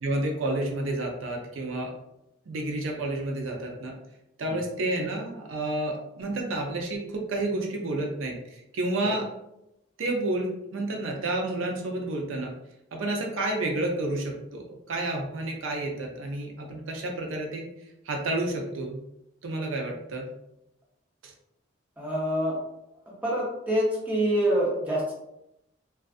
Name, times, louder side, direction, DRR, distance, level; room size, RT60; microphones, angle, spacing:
voice 1, 0.0-1.9 2.5-3.9 4.4-9.3 10.0-12.5 12.9-17.7 18.0-19.0 19.4-20.3 21.2-21.3, right 2 dB, 85° right, 1 dB, 0.5 m, -30 dB
voice 2, 22.0-22.6 23.1-25.1, equal, 10° right, -5 dB, 0.6 m, -26 dB
2.4 x 2.3 x 2.3 m, 0.84 s
head